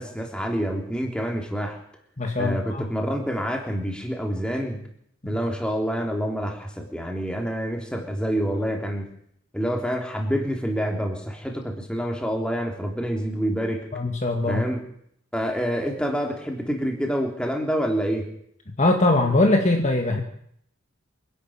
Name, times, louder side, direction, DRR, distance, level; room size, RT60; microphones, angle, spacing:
voice 1, 0.0-1.8 2.4-4.8 5.3-9.1 9.5-13.9 14.5-14.8 15.3-18.3, equal, 5° left, 2 dB, 3.5 m, -27 dB
voice 2, 2.2-2.8 13.9-14.6 18.8-20.2, left 2 dB, 30° left, 4 dB, 2.0 m, -21 dB
25.5 x 11.5 x 8.9 m, 0.69 s
head